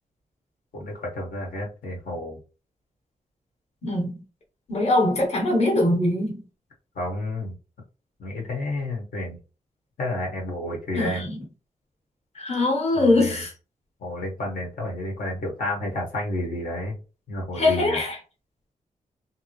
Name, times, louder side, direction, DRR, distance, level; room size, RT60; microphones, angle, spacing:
voice 1, 0.7-2.4 6.9-7.5 8.2-9.4 10.0-11.2 12.9-13.4 14.0-17.0 17.3-18.0, left 1 dB, 80° left, 1.4 m, -30 dB
voice 2, 3.8-4.2 4.7-6.4 10.9-11.4 12.3-13.5 17.5-18.2, left 2 dB, 50° left, 1.2 m, -22 dB
3.4 x 2.8 x 3.1 m
wide cardioid pair, 155°, 14 cm